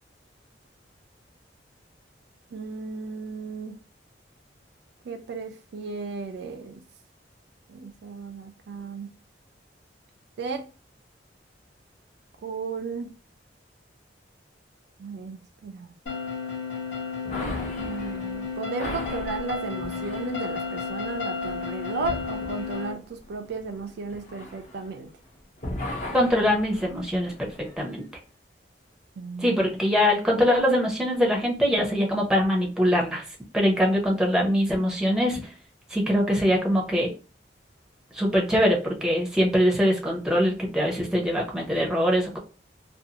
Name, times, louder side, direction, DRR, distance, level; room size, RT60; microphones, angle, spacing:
voice 1, 2.5-3.8 5.1-6.8 7.7-9.1 10.4-10.7 12.4-13.1 15.0-15.9 17.8-25.1 29.2-29.6, right 4 dB, 65° right, 0.4 m, -35 dB
sound 1, 16.1-22.9, left 5 dB, 85° left, 1.0 m, -32 dB
sound 2, 17.3-25.3 25.6-27.9, left 1 dB, 40° left, 0.7 m, -38 dB
voice 2, 26.1-27.5 27.8-28.0 29.4-33.2 33.5-35.4 35.9-37.1 38.1-42.4, equal, 5° right, 0.6 m, -23 dB
2.6 x 2.4 x 2.7 m
head